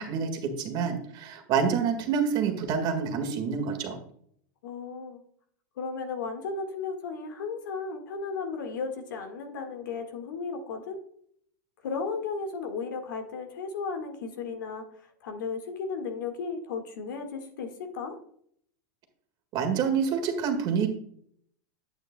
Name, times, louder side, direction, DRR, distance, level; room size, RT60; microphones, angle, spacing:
voice 1, 0.0-4.0 19.5-20.9, right 6 dB, 40° right, 5 dB, 1.7 m, -27 dB
voice 2, 4.6-5.2 5.8-11.0 11.8-14.8 15.2-18.2, left 5 dB, 80° left, 5 dB, 1.7 m, -35 dB
8.8 x 8.1 x 2.2 m, 0.65 s
supercardioid pair, 125°, 10 cm